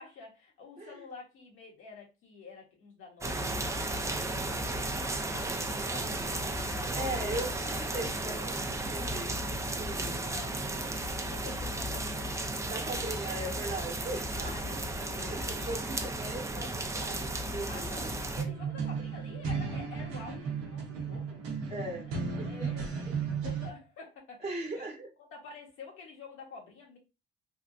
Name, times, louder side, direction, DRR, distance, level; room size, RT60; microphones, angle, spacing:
voice 1, 0.0-7.5 9.7-12.4 14.4-15.7 17.7-21.4 22.1-24.8 25.2-27.0, left 4 dB, 80° left, -1 dB, 1.3 m, -49 dB
sound 1, 3.2-18.4, right 1 dB, 15° right, 0.5 m, -34 dB
voice 2, 6.9-9.3 9.8-10.3 12.7-18.1 21.7-22.7 24.4-25.1, right 2 dB, 30° right, -1 dB, 1.1 m, -39 dB
sound 2, 18.4-23.7, right 5 dB, 90° right, 0.8 m, -35 dB
3.4 x 2.6 x 2.4 m, 0.28 s
supercardioid pair, 70°, 21 cm